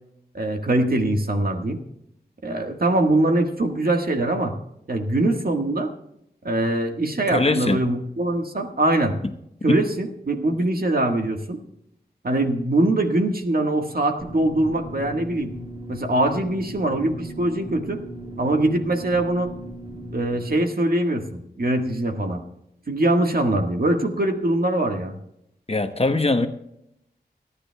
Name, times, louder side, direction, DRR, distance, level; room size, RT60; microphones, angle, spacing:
voice 1, 0.3-1.8 2.4-4.5 4.9-5.9 6.4-9.2 9.6-11.6 12.2-15.5 15.9-18.0 18.4-19.5 20.1-22.4 22.9-25.2, right 1 dB, 60° right, 4 dB, 1.5 m, -22 dB
voice 2, 7.3-7.8 9.7-9.8 25.7-26.5, left 2 dB, 35° left, 8 dB, 0.9 m, -21 dB
sound 1, 14.2-20.6, right 1 dB, 35° right, 1.6 m, -37 dB
29.0 x 10.0 x 2.3 m, 0.80 s
wide cardioid pair, 45°, 17 cm